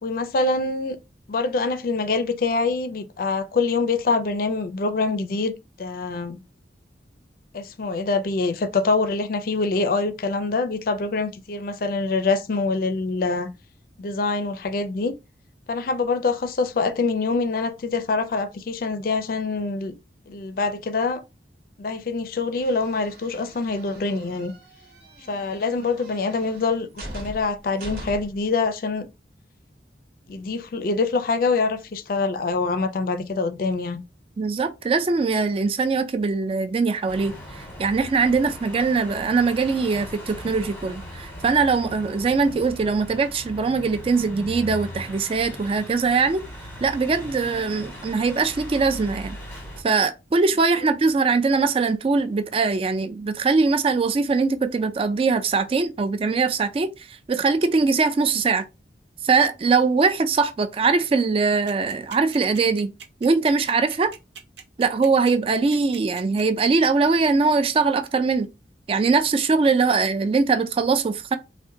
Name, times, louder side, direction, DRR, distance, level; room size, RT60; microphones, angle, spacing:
voice 1, 0.0-1.0 1.3-5.5 5.8-6.4 7.5-13.5 14.0-15.1 15.7-20.0 20.3-21.2 21.8-24.5 25.3-29.1 30.3-34.0, left 3 dB, 50° left, 0.4 m, -25 dB
sound 1, 22.6-28.5, right 1 dB, 50° right, 1.0 m, -41 dB
voice 2, 34.4-46.4 46.8-49.4 49.8-58.6 59.2-62.9 63.2-64.1 64.8-68.5 68.9-71.4, right 4 dB, 30° right, 0.3 m, -22 dB
sound 2, 37.1-49.8, equal, 10° left, 0.9 m, -39 dB
sound 3, 61.7-66.9, right 7 dB, 80° right, 0.7 m, -41 dB
3.7 x 2.1 x 2.6 m
head